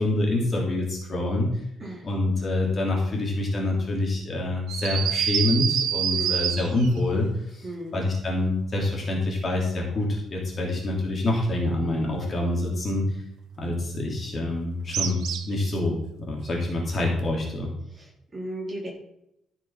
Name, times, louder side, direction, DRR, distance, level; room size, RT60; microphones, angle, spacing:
voice 1, 0.0-1.5 2.0-7.3 7.5-7.6 7.9-13.2 13.6-16.0 16.3-17.7, left 2 dB, 30° left, -1 dB, 3.1 m, -26 dB
Teapot Whistle, 4.7-7.0 14.9-15.7, right 9 dB, 80° right, 1.3 m, -26 dB
voice 2, 6.1-6.4 7.6-7.9 17.9-18.9, right 1 dB, 20° right, -3 dB, 3.9 m, -35 dB
14.5 x 6.4 x 5.8 m, 0.79 s
cardioid pair, 170°, 0 cm